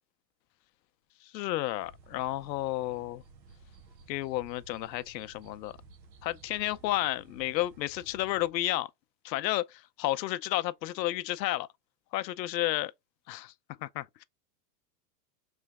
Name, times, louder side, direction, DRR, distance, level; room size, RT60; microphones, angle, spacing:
voice 1, 1.2-3.2 4.1-5.8 6.2-8.9 9.2-11.7 12.1-12.9 13.3-13.5 13.8-14.2, left 16 dB, 90° left, 0.6 m, -32 dB
sound 1, 1.8-8.5, right 4 dB, 85° right, 1.2 m, -55 dB
3.3 x 3.1 x 3.4 m
supercardioid pair, 180°, 50 cm